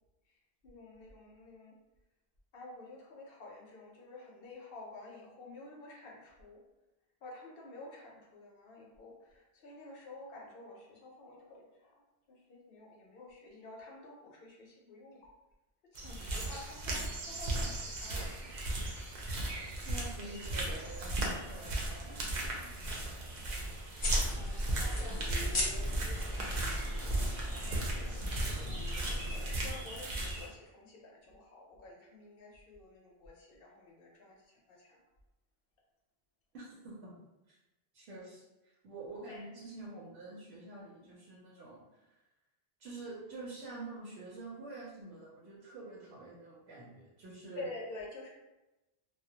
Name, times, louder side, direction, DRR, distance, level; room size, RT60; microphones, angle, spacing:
voice 1, 0.6-1.8 2.5-6.6 7.2-15.3 15.9-18.3 24.8-25.5 26.3-28.0 29.5-35.0 39.3-39.4 47.6-48.3, left 2 dB, 65° left, -1 dB, 0.7 m, -50 dB
sound 1, 16.0-30.5, right 2 dB, 55° right, 0.5 m, -37 dB
voice 2, 19.8-22.9 36.5-37.1 37.5-37.6 37.9-42.2 42.8-47.7, right 2 dB, 85° right, -6 dB, 0.9 m, -47 dB
sound 2, 24.0-29.6, equal, 40° left, 0.4 m, -36 dB
2.2 x 2.0 x 2.7 m, 1.0 s
omnidirectional pair, 1.1 m